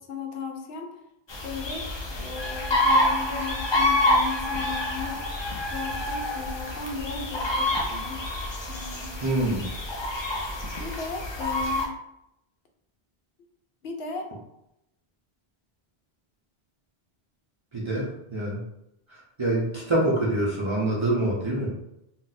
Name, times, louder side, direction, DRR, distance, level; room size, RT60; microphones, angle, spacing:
voice 1, 0.1-0.9 1.4-5.2 5.7-8.3 8.7-9.2 10.8-11.9 13.8-14.3, left 4 dB, 75° left, 3 dB, 0.8 m, -36 dB
sound 1, 1.3-11.9, left 1 dB, 40° left, 0.4 m, -27 dB
voice 2, 9.2-9.7 17.7-18.6 19.1-21.7, right 1 dB, 35° right, -5 dB, 0.6 m, -26 dB
2.6 x 2.1 x 4.0 m, 0.84 s
omnidirectional pair, 1.1 m